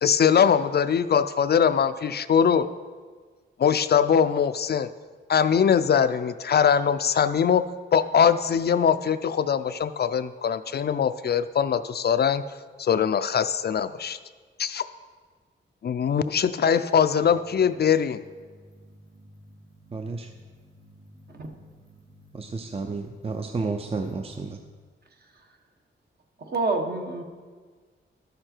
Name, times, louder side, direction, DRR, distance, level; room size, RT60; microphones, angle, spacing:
voice 1, 0.0-2.7 3.6-4.9 5.3-7.6 7.9-12.4 12.8-14.2 14.6-14.8 15.8-18.2, left 7 dB, 55° left, 12 dB, 0.4 m, -22 dB
sound 1, 17.2-24.5, left 1 dB, 80° right, 2.9 m, -52 dB
voice 2, 19.9-20.3 22.3-24.6, right 4 dB, 30° right, 5 dB, 0.6 m, -31 dB
voice 3, 26.4-27.2, right 3 dB, 55° right, 3 dB, 1.3 m, -27 dB
13.0 x 6.7 x 4.5 m, 1.5 s
cardioid pair, 85°, 20 cm